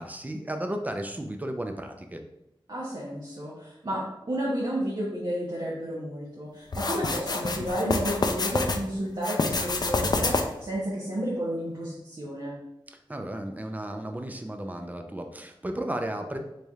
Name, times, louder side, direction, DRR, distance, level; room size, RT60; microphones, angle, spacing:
voice 1, 0.0-2.2 12.9-16.4, right 1 dB, 15° right, 5 dB, 0.5 m, -34 dB
voice 2, 2.7-12.6, equal, 55° right, -7 dB, 1.0 m, -31 dB
sound 1, 6.7-8.8 9.2-10.7, left 3 dB, 45° left, 0.4 m, -27 dB
4.1 x 3.3 x 2.3 m, 0.87 s
wide cardioid pair, 55°, 9 cm